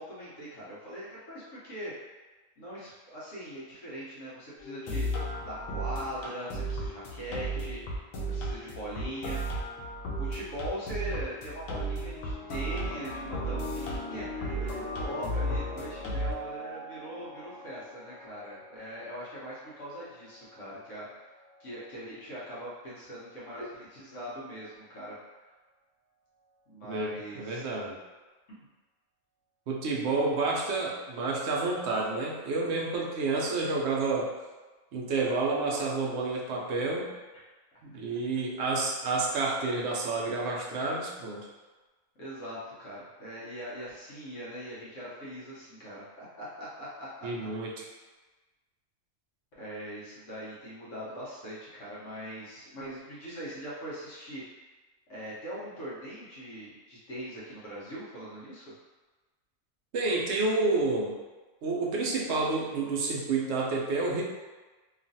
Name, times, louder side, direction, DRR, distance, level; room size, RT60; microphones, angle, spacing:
voice 1, 0.0-2.0 2.6-5.1 5.5-7.8 8.3-9.4 10.2-21.3 21.6-25.2 26.7-27.7 28.5-28.6 42.2-47.5 49.6-54.4 55.1-58.7, equal, 65° left, -8 dB, 1.2 m, -41 dB
sound 1, 4.6-16.3, right 1 dB, 90° left, 1.0 m, -34 dB
sound 2, 12.1-20.7 21.6-22.0, left 1 dB, 25° left, 0.8 m, -43 dB
voice 2, 26.8-28.0 29.7-34.3 34.9-37.1 37.8-41.5 47.2-47.8 59.9-61.2 61.6-64.2, right 3 dB, 65° right, -2 dB, 0.8 m, -29 dB
3.0 x 2.4 x 2.6 m, 1.2 s
omnidirectional pair, 1.4 m